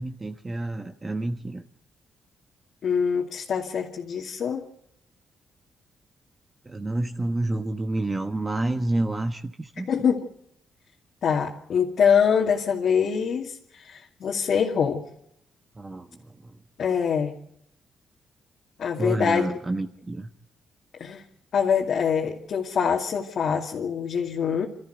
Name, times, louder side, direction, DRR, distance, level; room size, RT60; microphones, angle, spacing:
voice 1, 0.0-1.6 6.6-9.9 15.7-16.6 19.0-20.3, right 2 dB, 25° right, 6 dB, 1.3 m, -29 dB
voice 2, 2.8-4.6 9.9-10.2 11.2-15.0 16.8-17.3 18.8-19.4 21.0-21.2 21.5-24.7, left 7 dB, 65° left, -1 dB, 2.5 m, -24 dB
28.0 x 14.0 x 8.0 m, 0.76 s
cardioid pair, 90°, 0 cm